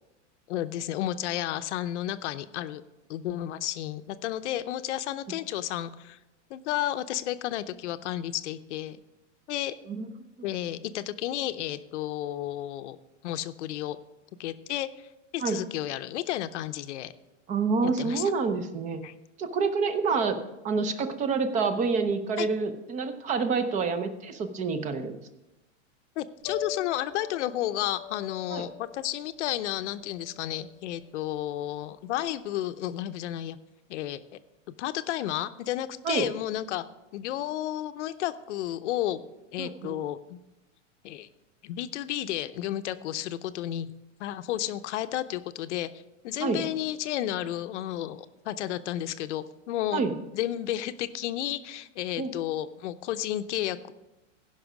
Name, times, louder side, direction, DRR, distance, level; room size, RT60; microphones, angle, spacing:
voice 1, 0.5-2.8 3.1-6.2 6.5-9.0 9.5-9.7 10.4-14.0 14.4-17.1 18.0-18.3 19.0-19.1 22.4-22.5 26.2-33.6 33.9-34.4 34.8-36.8 37.1-39.2 39.5-40.4 41.0-41.3 41.6-43.9 44.2-45.9 46.2-50.0 50.3-53.9, left 13 dB, 65° left, 12 dB, 0.7 m, -32 dB
voice 2, 17.5-19.1 19.4-20.4 20.6-25.2 28.5-28.6 36.0-36.3 39.6-40.0 46.4-46.6 49.9-50.1 52.2-52.3, right 4 dB, 20° right, 10 dB, 0.6 m, -27 dB
Piano, 26.4-32.3, left 8 dB, 80° right, 2.9 m, -43 dB
16.0 x 5.6 x 5.0 m, 1.0 s
supercardioid pair, 145°, 37 cm